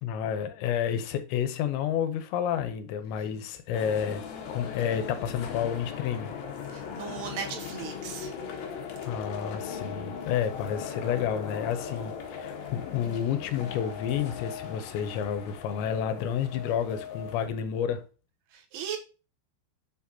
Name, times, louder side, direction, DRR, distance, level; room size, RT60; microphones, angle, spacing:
voice 1, 0.0-6.3 9.1-18.0, left 8 dB, 90° left, 3.1 m, -30 dB
sound 1, 3.7-17.5, left 7 dB, 65° left, 2.8 m, -38 dB
voice 2, 6.7-8.3 18.5-19.0, right 8 dB, 75° right, 2.9 m, -37 dB
7.9 x 6.0 x 2.8 m
omnidirectional pair, 5.2 m